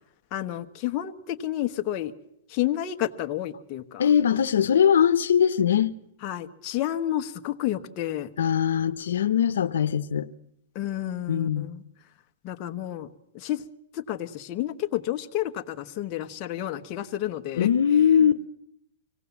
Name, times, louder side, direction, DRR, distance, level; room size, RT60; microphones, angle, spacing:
voice 1, 0.3-2.1 2.5-4.0 6.2-8.3 10.7-11.8 12.4-13.1 13.3-13.6 13.9-17.7, left 13 dB, 35° left, 1.2 m, -30 dB
voice 2, 4.0-6.0 8.4-10.3 11.3-11.7 17.6-18.5, left 8 dB, 90° left, 0.9 m, -21 dB
25.0 x 18.0 x 7.2 m
hypercardioid pair, 150°, 0 cm